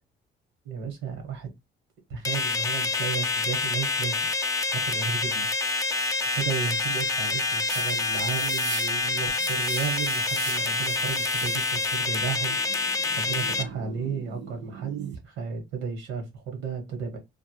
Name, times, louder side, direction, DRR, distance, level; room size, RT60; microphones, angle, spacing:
voice 1, 0.6-1.5 2.1-4.3 4.7-5.5 6.3-12.6 13.2-17.2, right 6 dB, 90° right, 1.1 m, -33 dB
sound 1, 2.2-13.6, left 3 dB, 15° left, 0.4 m, -27 dB
sound 2, 7.7-15.2, right 7 dB, 65° right, 0.6 m, -40 dB
2.4 x 2.1 x 2.9 m
cardioid pair, 90°, 20 cm